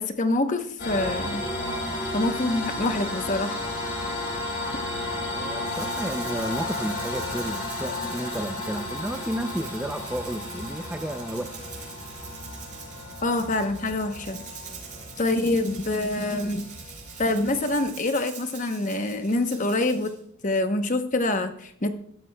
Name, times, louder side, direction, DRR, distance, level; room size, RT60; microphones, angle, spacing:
voice 1, 0.0-1.4 2.1-3.6 13.2-14.4 15.2-16.7 17.2-20.1 20.4-22.0, left 2 dB, 35° left, 8 dB, 0.9 m, -26 dB
sound 1, 0.8-17.9, left 2 dB, 50° left, 5.0 m, -33 dB
voice 2, 5.3-11.5, right 1 dB, 5° right, 6 dB, 0.4 m, -32 dB
Rattle (instrument), 5.7-20.2, right 6 dB, 35° right, 4.1 m, -44 dB
15.0 x 12.5 x 2.2 m, 0.66 s
head